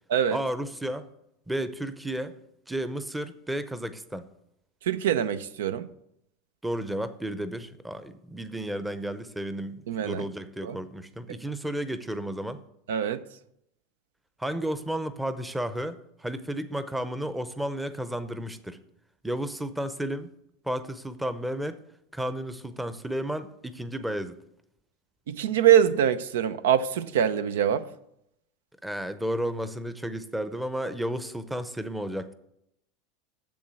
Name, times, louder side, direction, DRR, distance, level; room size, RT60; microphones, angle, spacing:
voice 1, 0.3-1.0 1.5-2.3 2.7-4.3 6.6-12.6 14.4-18.8 19.2-20.3 20.6-21.8 22.1-24.4 28.8-32.3, right 1 dB, 5° right, 0.7 m, -32 dB
voice 2, 4.8-5.9 9.9-10.2 10.6-10.8 12.9-13.2 25.3-27.9, right 9 dB, 90° right, 0.6 m, -24 dB
7.4 x 7.0 x 7.6 m
supercardioid pair, 130°, 0 cm